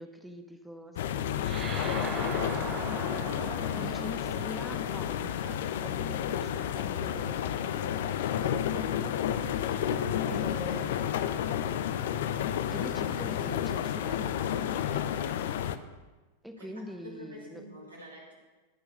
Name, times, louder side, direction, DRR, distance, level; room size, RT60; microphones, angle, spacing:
voice 1, 0.0-3.2 3.7-9.2 10.3-11.5 12.7-15.4 16.4-17.6, equal, ahead, 6 dB, 0.9 m, -45 dB
sound 1, 1.0-15.8, left 9 dB, 55° left, 0.4 m, -31 dB
sound 2, 1.4-6.2, right 6 dB, 30° right, 0.8 m, -40 dB
voice 2, 16.6-18.3, equal, 75° right, -2 dB, 2.6 m, -48 dB
13.0 x 4.7 x 6.4 m, 1.2 s
figure-of-eight pair, 90°, 0 cm